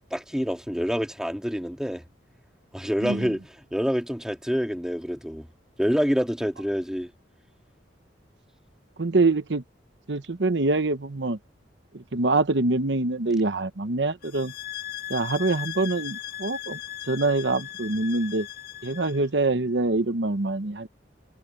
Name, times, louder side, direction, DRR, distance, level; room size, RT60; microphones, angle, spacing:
voice 1, 0.1-2.0 2.7-5.5 5.8-7.1, equal, 5° right, 2.4 m, -27 dB
voice 2, 9.0-9.6 10.1-11.4 11.9-14.5 15.1-16.8 17.1-18.5 18.8-20.9, right 3 dB, 75° right, 1.0 m, -25 dB
sound 1, 14.2-19.3, left 13 dB, 60° left, 1.9 m, -38 dB
head